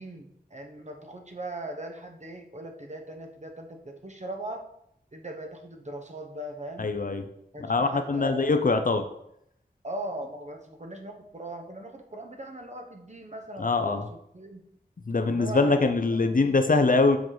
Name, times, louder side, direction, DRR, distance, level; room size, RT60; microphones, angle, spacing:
voice 1, 0.0-4.6 5.1-6.9 7.5-8.5 9.8-14.0 14.3-14.6 15.3-16.6, right 1 dB, 45° right, 4 dB, 1.0 m, -39 dB
voice 2, 6.8-7.3 7.6-9.0 13.6-14.0 15.1-17.2, left 3 dB, 55° left, 7 dB, 0.6 m, -23 dB
7.1 x 4.8 x 3.9 m, 0.75 s
wide cardioid pair, 65°, 17 cm